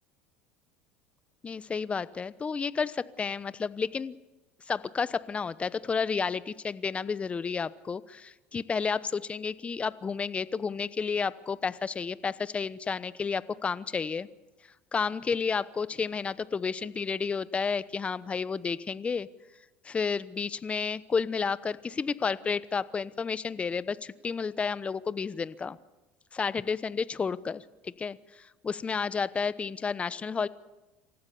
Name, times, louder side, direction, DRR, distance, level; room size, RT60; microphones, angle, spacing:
voice 1, 1.4-4.2 4.7-14.3 14.9-19.3 19.8-25.8 26.3-30.5, left 5 dB, 25° left, 17 dB, 0.9 m, -31 dB
27.0 x 15.0 x 7.0 m, 1.1 s
hypercardioid pair, 80°, 5 cm